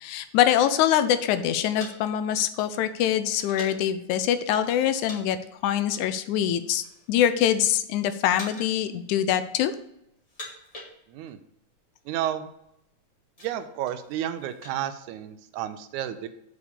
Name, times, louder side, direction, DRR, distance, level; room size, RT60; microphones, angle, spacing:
voice 1, 0.0-5.4 5.6-9.7, left 10 dB, 80° left, 12 dB, 1.9 m, -24 dB
sound 1, 1.4-3.9 4.6-5.2 5.5-5.7 6.4-7.1 7.5-7.9 8.3-8.8 9.1-9.8 10.1-11.4 11.7-11.8 12.0-12.3 12.8-14.8, left 1 dB, 25° left, 2.2 m, -44 dB
voice 2, 12.1-12.5 13.4-16.3, right 11 dB, 80° right, 10 dB, 2.0 m, -31 dB
7.1 x 4.8 x 6.7 m, 0.79 s
omnidirectional pair, 3.6 m